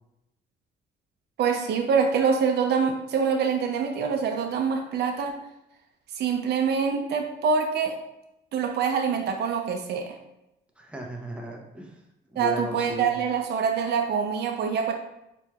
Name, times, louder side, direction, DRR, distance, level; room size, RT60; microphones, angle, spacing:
voice 1, 1.4-5.4 6.2-8.0 8.5-10.2 12.4-14.9, right 6 dB, 60° right, 3 dB, 0.5 m, -25 dB
voice 2, 10.8-12.0 12.3-13.2, right 1 dB, 5° right, 0 dB, 0.7 m, -36 dB
4.2 x 3.0 x 2.3 m, 0.88 s
cardioid pair, 90°, 20 cm